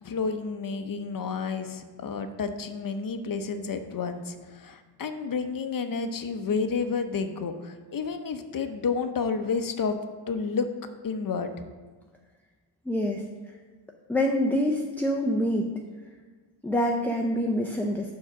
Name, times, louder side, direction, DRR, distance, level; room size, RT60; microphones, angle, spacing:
voice 1, 0.0-10.0 10.3-10.7 11.0-11.5, left 5 dB, 45° left, 8 dB, 0.7 m, -30 dB
voice 2, 12.9-13.2 14.1-15.7 16.6-18.1, equal, 5° left, 1 dB, 0.4 m, -26 dB
4.7 x 4.5 x 6.0 m, 1.4 s
cardioid pair, 70°, 49 cm